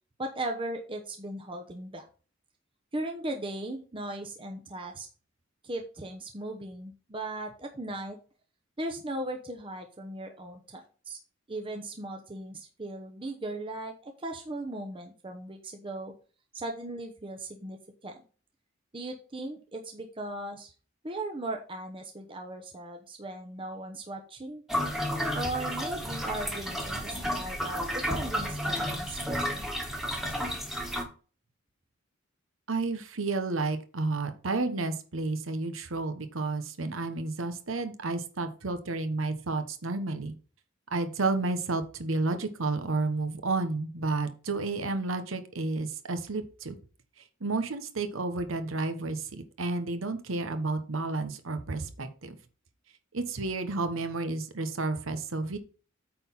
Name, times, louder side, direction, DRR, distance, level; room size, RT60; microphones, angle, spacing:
voice 1, 0.2-2.1 2.9-5.1 5.6-8.2 8.8-11.2 11.5-16.1 16.5-18.2 18.9-20.7 21.0-24.6 25.3-29.7, right 1 dB, 25° right, 4 dB, 0.9 m, -38 dB
sound 1, 24.7-31.0, equal, ahead, 1.5 m, -32 dB
voice 2, 32.7-40.3 40.9-46.8 47.2-52.4 53.1-55.6, right 3 dB, 75° right, 9 dB, 1.0 m, -31 dB
8.9 x 3.9 x 5.6 m, 0.37 s
head